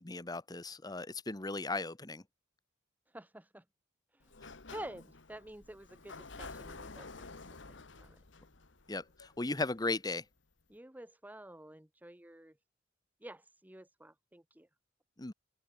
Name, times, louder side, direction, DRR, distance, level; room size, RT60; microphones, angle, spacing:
voice 1, 0.0-2.2 8.9-10.2 15.2-15.3, left 2 dB, 20° left, 1.0 m, -36 dB
voice 2, 3.1-3.6 4.1-4.4 4.7-8.2 10.7-12.6 13.2-14.7, right 1 dB, 10° right, 1.0 m, -50 dB
Sliding door, 4.2-9.9, left 3 dB, 75° left, 1.7 m, -50 dB
open air
head